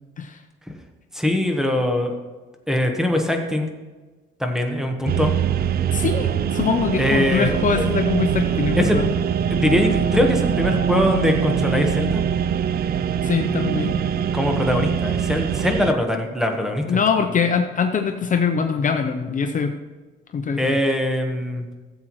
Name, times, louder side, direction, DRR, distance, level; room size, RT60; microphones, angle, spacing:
voice 1, 1.1-2.2 2.7-3.7 4.4-5.3 7.0-7.8 8.7-9.0 9.5-12.2 14.3-17.0 20.6-21.6, left 1 dB, ahead, 4 dB, 1.2 m, -22 dB
sound 1, 5.0-15.9, right 8 dB, 50° right, 0.4 m, -23 dB
voice 2, 5.9-9.1 13.2-14.0 16.9-19.7 20.3-20.8, left 6 dB, 40° left, 6 dB, 0.7 m, -23 dB
15.0 x 7.7 x 3.1 m, 1.3 s
cardioid pair, 115°, 21 cm